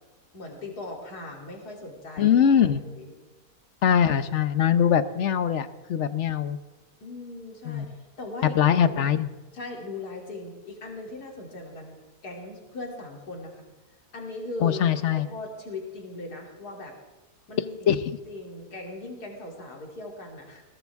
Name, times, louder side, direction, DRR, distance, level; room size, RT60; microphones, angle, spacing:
voice 1, 0.3-3.1 7.0-9.0 9.5-12.0 12.2-13.7 14.1-14.8 15.1-16.9 17.5-20.6, left 2 dB, 70° left, 0 dB, 3.6 m, -39 dB
voice 2, 2.2-2.8 3.8-6.6 7.6-7.9 8.5-9.3 14.6-15.3 17.9-18.0, left 8 dB, 55° left, 12 dB, 1.0 m, -22 dB
21.5 x 18.5 x 3.6 m, 1.2 s
omnidirectional pair, 1.7 m